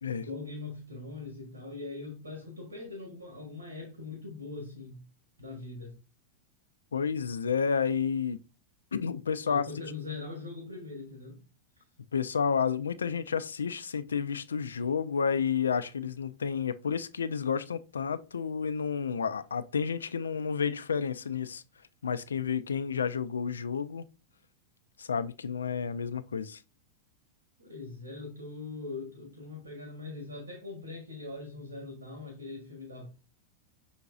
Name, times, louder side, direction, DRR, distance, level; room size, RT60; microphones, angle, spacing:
voice 1, 0.2-5.0 5.4-6.0 9.4-11.4 27.6-33.1, left 3 dB, 75° right, 1.2 m, -41 dB
voice 2, 6.9-8.4 8.9-9.6 12.1-21.6 22.0-24.1 25.0-26.6, left 6 dB, 70° left, 0.3 m, -30 dB
5.6 x 3.8 x 2.4 m
figure-of-eight pair, 90°, 0 cm